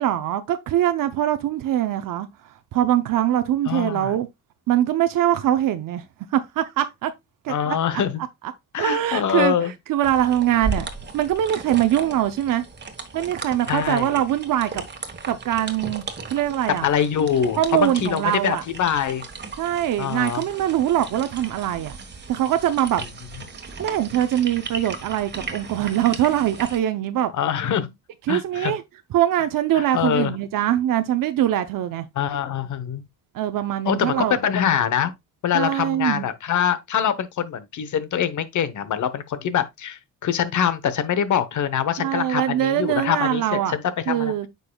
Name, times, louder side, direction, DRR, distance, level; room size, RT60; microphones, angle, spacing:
voice 1, 0.0-2.3 2.7-4.3 4.7-6.0 6.3-7.1 7.4-7.8 8.8-12.6 13.1-14.8 15.3-16.9 17.6-18.6 19.6-22.0 22.3-23.0 23.8-27.3 28.3-28.8 29.1-32.1 33.3-34.4 35.5-36.2 42.0-43.8 44.1-44.5, right 12 dB, 80° right, 0.8 m, -22 dB
voice 2, 3.7-4.1 7.5-8.2 8.7-9.7 13.7-14.1 16.7-19.3 20.0-20.4 27.3-27.9 28.3-28.7 29.7-30.3 32.2-33.0 33.8-35.1 35.4-44.3, left 8 dB, 65° left, 1.0 m, -24 dB
sound 1, 10.0-26.8, right 4 dB, 35° right, 1.4 m, -36 dB
9.2 x 5.4 x 2.3 m
cardioid pair, 95°, 33 cm